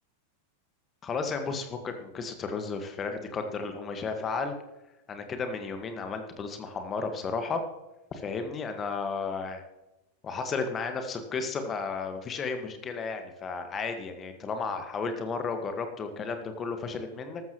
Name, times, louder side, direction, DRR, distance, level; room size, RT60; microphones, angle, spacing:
voice 1, 1.0-4.5 5.1-7.6 8.1-9.6 10.2-17.4, left 4 dB, 25° left, 7 dB, 1.5 m, -33 dB
13.5 x 13.0 x 3.0 m, 0.99 s
figure-of-eight pair, 90°, 0 cm